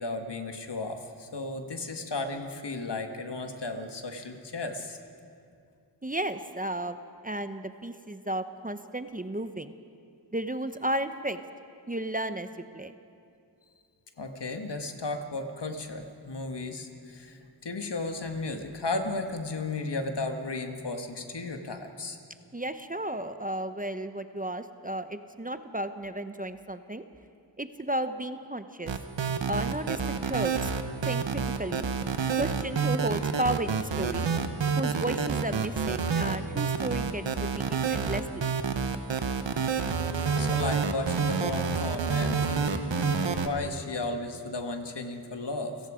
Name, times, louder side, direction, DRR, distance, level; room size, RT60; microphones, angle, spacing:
voice 1, 0.0-5.0 14.2-22.2 40.4-45.8, left 2 dB, 70° left, 5 dB, 1.8 m, -34 dB
voice 2, 6.0-7.0 7.2-9.8 10.3-11.4 11.9-12.5 12.7-12.9 22.5-27.0 27.6-28.9 29.5-30.7 31.1-31.9 32.4-34.3 34.8-38.5, right 1 dB, 20° right, 10 dB, 0.8 m, -33 dB
sound 1, 28.9-43.5, right 6 dB, 90° right, 1.2 m, -28 dB
30.0 x 17.5 x 5.1 m, 2.4 s
wide cardioid pair, 65°, 43 cm